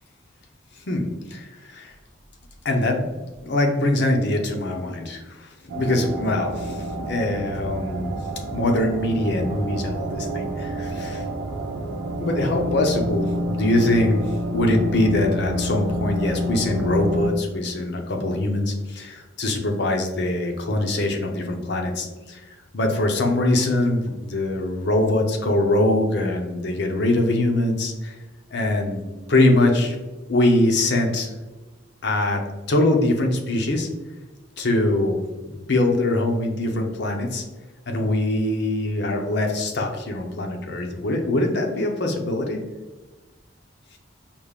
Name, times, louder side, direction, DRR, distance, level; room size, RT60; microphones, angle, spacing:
voice 1, 0.9-1.9 2.6-3.1 3.4-8.2 8.5-11.2 12.2-14.2 14.5-22.4 22.7-28.2 28.5-29.0 29.3-30.0 30.3-31.3 32.0-32.4 32.7-33.9 34.6-35.2 35.5-37.4 37.9-42.6, left 1 dB, 65° left, 3 dB, 0.7 m, -23 dB
sound 1, 5.7-17.3, right 1 dB, 80° right, 0.5 m, -29 dB
5.0 x 2.4 x 3.4 m, 1.1 s
head